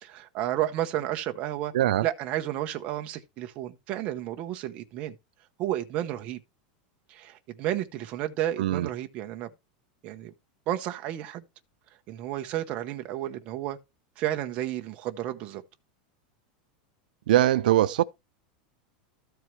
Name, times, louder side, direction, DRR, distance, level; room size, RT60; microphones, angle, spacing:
voice 1, 0.0-1.7 2.0-5.1 5.6-6.4 7.1-9.5 10.0-10.3 10.7-11.4 12.1-13.8 14.2-15.6, right 13 dB, 30° right, 0.7 m, -32 dB
voice 2, 1.7-2.1 8.6-8.9 17.3-18.0, right 13 dB, 90° right, 0.5 m, -22 dB
13.5 x 4.5 x 3.1 m
supercardioid pair, 180°, 5 cm